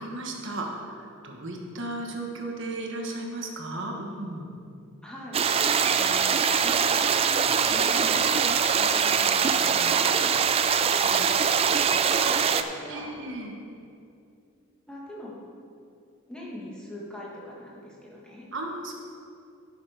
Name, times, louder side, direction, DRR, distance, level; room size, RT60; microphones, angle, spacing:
voice 1, 0.0-4.5 12.9-13.5 18.5-18.9, right 2 dB, 55° right, 1 dB, 1.4 m, -35 dB
voice 2, 5.0-5.4 5.9-10.4 11.0-13.2 14.9-15.4 16.3-18.4, equal, 5° left, -5 dB, 1.8 m, -42 dB
sound 1, 5.3-12.6, right 6 dB, 25° right, 0.3 m, -23 dB
11.0 x 7.0 x 5.1 m, 2.5 s
head